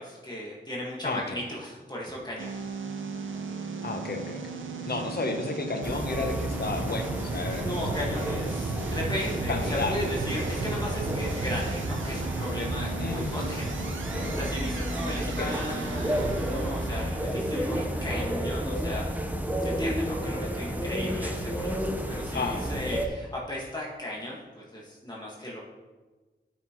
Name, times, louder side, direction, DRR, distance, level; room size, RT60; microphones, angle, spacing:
voice 1, 0.0-2.6 4.8-5.0 7.5-19.1 19.6-25.6, left 1 dB, 20° left, -5 dB, 1.7 m, -36 dB
voice 2, 1.0-1.4 3.8-4.4 4.8-8.3 9.5-9.9 13.0-13.4 15.3-15.5 20.2-20.3 22.3-22.7, left 3 dB, 55° left, 4 dB, 0.9 m, -32 dB
sound 1, 2.4-18.7, right 4 dB, 85° right, 0.7 m, -35 dB
sound 2, 5.8-23.1, equal, 10° right, 0.9 m, -32 dB
12.0 x 6.2 x 3.1 m, 1.3 s
wide cardioid pair, 60°, 20 cm